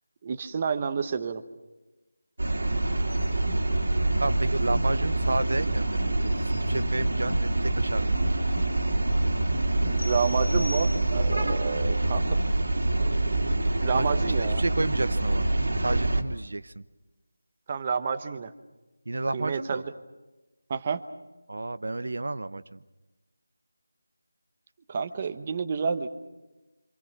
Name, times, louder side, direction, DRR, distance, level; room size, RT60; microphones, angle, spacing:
voice 1, 0.2-1.4 9.8-12.4 13.8-14.6 17.7-18.5 19.3-19.9 20.7-21.0 24.9-26.1, right 5 dB, 25° right, 10 dB, 1.0 m, -29 dB
sound 1, 2.4-16.2, right 2 dB, 85° right, 3.0 m, -26 dB
voice 2, 4.2-8.2 13.9-15.5 15.8-16.8 19.1-19.8 21.5-22.8, right 2 dB, 65° right, 13 dB, 0.9 m, -31 dB
sound 2, 10.0-11.5, left 1 dB, 85° left, 1.7 m, -41 dB
27.0 x 27.0 x 6.0 m, 1.1 s
figure-of-eight pair, 175°, 0 cm